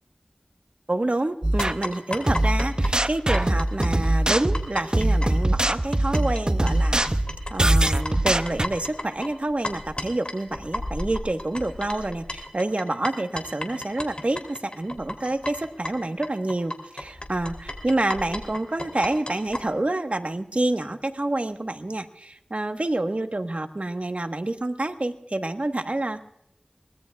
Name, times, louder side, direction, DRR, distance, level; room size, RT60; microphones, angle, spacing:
voice 1, 0.9-7.2 7.5-26.2, right 2 dB, 60° right, 7 dB, 1.3 m, -28 dB
sound 1, 1.4-1.8 2.3-8.7, right 1 dB, 35° right, 0.7 m, -22 dB
sound 2, 1.6-6.4 6.7-19.6, left 1 dB, 45° left, 3.2 m, -34 dB
23.5 x 19.5 x 2.3 m, 0.78 s
wide cardioid pair, 45°, 3 cm